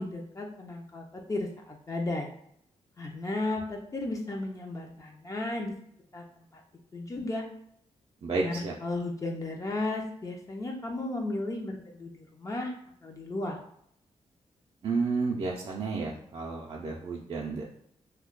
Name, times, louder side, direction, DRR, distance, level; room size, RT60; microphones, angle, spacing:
voice 1, 0.0-2.3 3.0-5.7 6.1-6.2 6.5-6.6 6.9-7.4 8.4-8.5 8.8-12.7 13.0-13.6, left 2 dB, 30° left, 1 dB, 0.5 m, -34 dB
voice 2, 8.2-8.7 14.8-17.6, right 4 dB, 45° right, -2 dB, 0.4 m, -31 dB
2.7 x 2.2 x 3.7 m, 0.71 s
wide cardioid pair, 120°, 11 cm